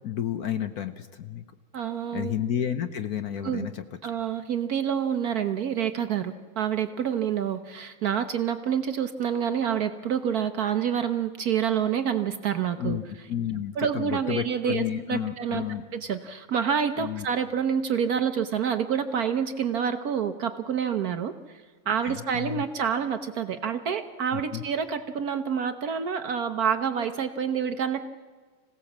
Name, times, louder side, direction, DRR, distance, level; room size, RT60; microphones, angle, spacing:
voice 1, 0.0-1.4 2.1-3.8 12.8-13.0 13.3-15.8 17.0-17.3 22.0-22.6 24.3-24.6, left 10 dB, 60° left, 10 dB, 1.2 m, -31 dB
voice 2, 1.7-2.3 3.4-3.7 4.0-13.0 13.8-15.6 15.9-28.1, right 8 dB, 60° right, 9 dB, 1.1 m, -28 dB
26.0 x 17.0 x 7.3 m, 1.5 s
omnidirectional pair, 2.2 m